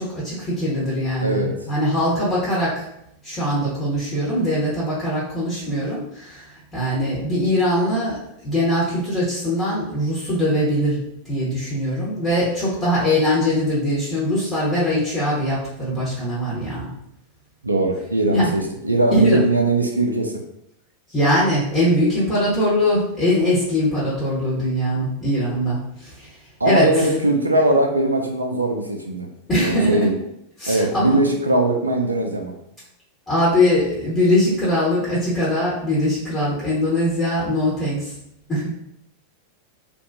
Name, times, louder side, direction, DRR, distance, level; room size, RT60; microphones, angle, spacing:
voice 1, 0.0-2.8 3.2-6.5 6.7-8.2 8.4-16.9 18.3-18.5 19.1-19.4 21.1-26.3 26.6-27.1 29.5-30.1 30.6-31.2 33.3-38.1 38.5-38.7, equal, 20° left, -9 dB, 1.2 m, -21 dB
voice 2, 1.2-1.5 17.6-20.3 26.6-29.3 29.6-30.1 30.7-32.5, right 2 dB, 80° right, 2 dB, 0.4 m, -20 dB
2.5 x 2.3 x 2.6 m, 0.78 s
figure-of-eight pair, 90°, 0 cm